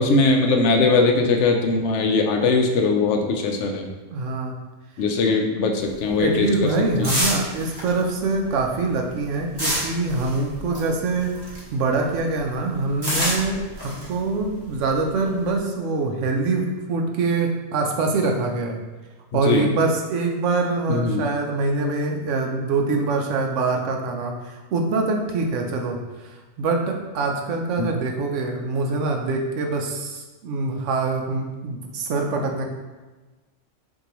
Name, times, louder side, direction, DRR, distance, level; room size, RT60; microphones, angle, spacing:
voice 1, 0.0-3.9 5.0-6.5 7.0-7.1 19.5-19.7 20.9-21.3 27.8-27.9, left 3 dB, 70° left, 3 dB, 0.9 m, -20 dB
voice 2, 4.1-4.5 6.2-18.8 19.3-32.7, right 3 dB, 75° right, 2 dB, 1.0 m, -24 dB
sound 1, 5.8-11.8 12.1-15.5, equal, 20° right, 1.0 m, -29 dB
6.2 x 2.7 x 3.0 m, 1.2 s
omnidirectional pair, 1.3 m